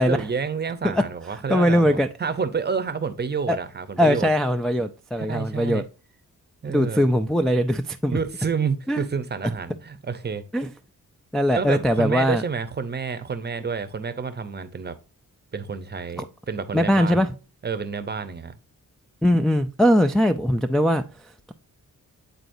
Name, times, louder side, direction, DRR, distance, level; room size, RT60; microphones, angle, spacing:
voice 1, 0.0-4.3 5.2-5.8 6.6-7.1 8.1-10.4 11.6-15.0 15.5-17.3 17.6-18.6, right 5 dB, 30° right, 0.7 m, -29 dB
voice 2, 1.5-2.1 3.5-3.6 4.0-5.8 6.7-8.2 8.9-9.0 10.5-10.7 11.3-12.4 16.7-17.3 19.2-21.5, equal, ahead, 0.3 m, -21 dB
9.2 x 4.0 x 2.6 m
wide cardioid pair, 120°, 33 cm